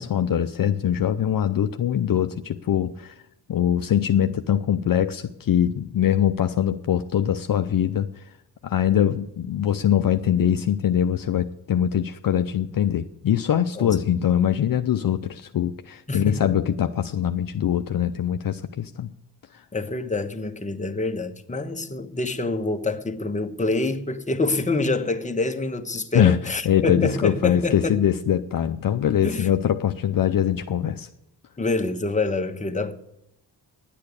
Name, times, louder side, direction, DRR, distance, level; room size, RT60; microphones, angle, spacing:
voice 1, 0.0-3.1 3.5-8.2 8.6-19.1 26.1-31.1, left 9 dB, 50° left, 0.7 m, -23 dB
voice 2, 16.1-16.5 19.7-28.0 29.2-29.5 31.6-32.9, left 3 dB, 15° left, 1.2 m, -26 dB
11.0 x 8.7 x 8.5 m
cardioid pair, 100°, 42 cm